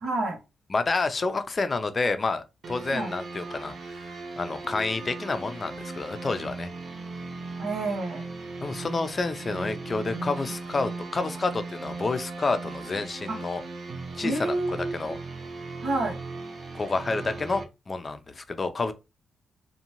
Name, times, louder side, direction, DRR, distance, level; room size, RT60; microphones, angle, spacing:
voice 1, 0.0-0.4 2.9-3.1 7.6-8.2 13.3-13.4 14.2-15.2 15.8-16.2, right 2 dB, 85° right, 0.9 m, -29 dB
voice 2, 0.7-3.7 4.4-6.7 8.6-13.6 14.2-14.6 14.9-15.2 16.7-18.9, left 3 dB, 40° left, 0.4 m, -29 dB
sound 1, 2.6-17.6, right 3 dB, 55° right, 0.6 m, -38 dB
2.6 x 2.2 x 2.9 m
cardioid pair, 90°, 0 cm